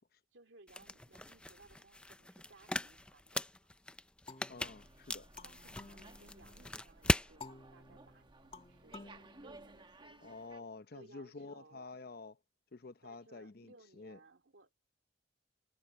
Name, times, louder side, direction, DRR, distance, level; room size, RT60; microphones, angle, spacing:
voice 1, 0.3-3.7 5.4-10.4 10.9-11.9 13.0-14.8, right 2 dB, 70° right, 2.5 m, -62 dB
sound 1, 0.7-7.3, left 1 dB, 5° left, 0.4 m, -39 dB
sound 2, 4.3-6.8 7.4-10.2, left 3 dB, 30° left, 2.2 m, -55 dB
voice 2, 4.5-5.3 10.2-12.4 12.7-14.2, left 3 dB, 50° left, 0.8 m, -49 dB
Slam, 4.6-10.6, right 2 dB, 25° right, 1.0 m, -59 dB
head